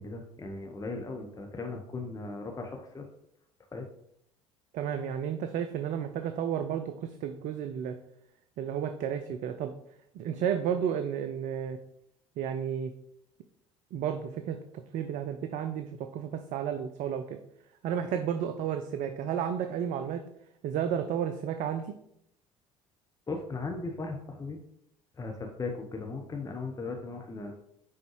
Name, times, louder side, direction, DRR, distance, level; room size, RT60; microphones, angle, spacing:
voice 1, 0.0-3.0 3.7-3.9 23.3-24.6 25.2-27.5, left 3 dB, 20° left, 2 dB, 0.9 m, -37 dB
voice 2, 4.7-8.0 8.6-9.7 10.1-11.8 12.4-12.9 13.9-17.4 17.8-20.2 20.6-21.9, right 8 dB, 50° right, 9 dB, 0.5 m, -32 dB
9.7 x 3.9 x 3.1 m, 0.74 s
figure-of-eight pair, 60°, 16 cm